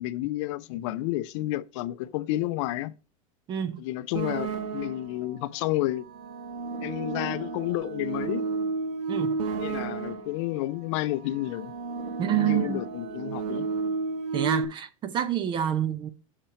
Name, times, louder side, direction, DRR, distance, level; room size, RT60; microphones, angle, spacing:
voice 1, 0.0-2.9 3.8-6.1 6.8-8.4 9.6-11.7 12.3-13.7, left 16 dB, 60° left, 0.5 m, -30 dB
voice 2, 3.5-3.8 9.1-9.4 12.2-12.8 14.3-16.1, right 10 dB, 25° right, 0.6 m, -27 dB
sound 1, 4.1-5.2 6.0-10.5 11.2-14.6, right 4 dB, 70° right, 1.1 m, -32 dB
6.6 x 4.4 x 5.6 m
supercardioid pair, 155°, 18 cm